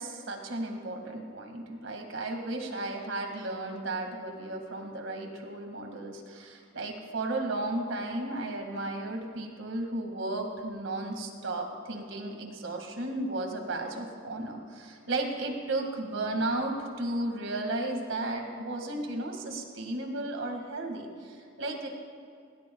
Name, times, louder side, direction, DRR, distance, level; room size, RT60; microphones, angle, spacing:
voice 1, 0.0-21.9, right 2 dB, 75° right, 3 dB, 2.0 m, -34 dB
20.5 x 19.5 x 2.3 m, 2.3 s
head